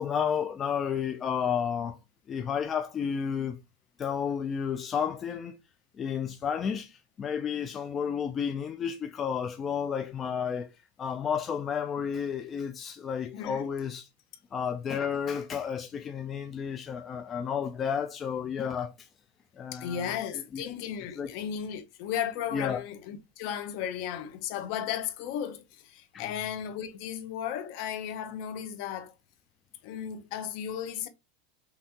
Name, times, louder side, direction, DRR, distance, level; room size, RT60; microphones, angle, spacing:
voice 1, 0.0-2.0 2.3-3.6 4.0-5.6 6.0-10.7 11.0-14.1 14.5-19.1 19.6-20.1 20.5-20.6 21.2-21.3 22.5-22.8 26.1-26.2, left 7 dB, 20° left, 0.4 m, -31 dB
voice 2, 13.3-13.7 19.7-29.1 29.8-31.1, left 9 dB, 50° left, 0.9 m, -35 dB
5.7 x 2.8 x 2.8 m
supercardioid pair, 160°, 0 cm